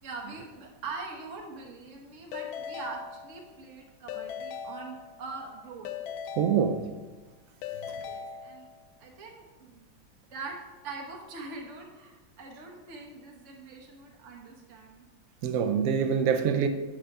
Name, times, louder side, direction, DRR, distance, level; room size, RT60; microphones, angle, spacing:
voice 1, 0.0-5.9 8.1-8.7 9.0-9.9 10.3-10.5 10.8-15.1, right 3 dB, 45° right, 1.4 m, -43 dB
Keyboard (musical) / Ringtone, 2.3-3.7 4.1-5.4 5.8-7.2 7.6-9.0, left 7 dB, 85° left, 1.4 m, -40 dB
voice 2, 6.4-6.8 15.4-16.7, right 7 dB, 85° right, 0.7 m, -25 dB
10.0 x 3.8 x 5.4 m
omnidirectional pair, 2.1 m